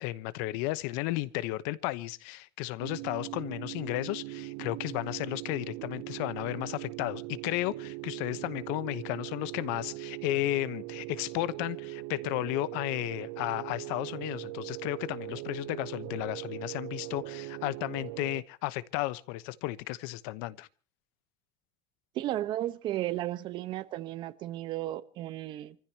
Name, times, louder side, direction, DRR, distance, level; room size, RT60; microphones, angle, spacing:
voice 1, 0.0-20.7, left 17 dB, 80° left, 1.0 m, -34 dB
sound 1, 2.8-18.4, right 22 dB, 80° right, 0.8 m, -40 dB
voice 2, 22.1-25.8, right 14 dB, 50° right, 1.1 m, -34 dB
29.0 x 15.0 x 2.9 m
cardioid pair, 145°, 10 cm